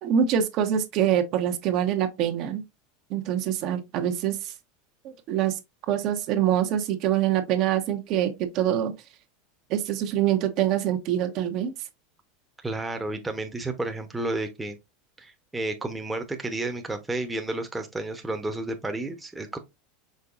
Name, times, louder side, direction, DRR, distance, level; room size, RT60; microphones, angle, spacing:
voice 1, 0.0-2.6 3.1-4.5 5.0-5.6 5.9-8.9 9.7-11.7, right 10 dB, 55° right, 0.9 m, -25 dB
voice 2, 12.6-14.8 15.2-19.6, right 2 dB, 10° right, 0.9 m, -31 dB
5.4 x 3.8 x 2.5 m
supercardioid pair, 120°, 0 cm